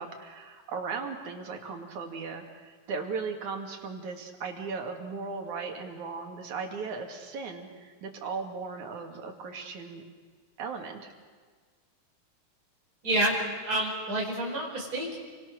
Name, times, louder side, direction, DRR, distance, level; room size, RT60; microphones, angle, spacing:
voice 1, 0.0-10.0 10.6-11.1, right 4 dB, 80° right, 3 dB, 3.7 m, -37 dB
voice 2, 13.0-13.4 13.6-15.2, right 1 dB, 30° right, -3 dB, 5.6 m, -28 dB
29.5 x 24.0 x 6.6 m, 1.5 s
omnidirectional pair, 3.4 m